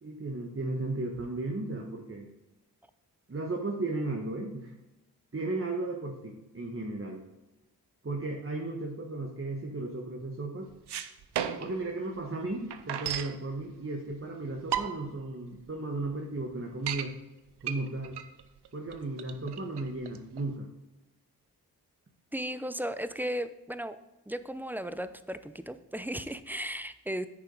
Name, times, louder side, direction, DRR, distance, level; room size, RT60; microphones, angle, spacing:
voice 1, 0.0-2.3 3.3-4.7 5.3-7.2 8.0-10.7 11.6-17.1 17.6-18.2 18.7-20.7, right 2 dB, 35° right, 0 dB, 1.5 m, -35 dB
sound 1, 10.7-11.8 12.2-12.3 12.5-13.4 14.1-14.2 14.6-15.2 15.7-15.8 16.0-16.1 16.5-17.1 17.6-20.5, right 9 dB, 80° right, 0.7 m, -34 dB
voice 2, 22.3-24.0 24.3-27.3, equal, 5° right, 12 dB, 0.6 m, -35 dB
9.1 x 6.7 x 4.0 m, 1.0 s
cardioid pair, 45°, 40 cm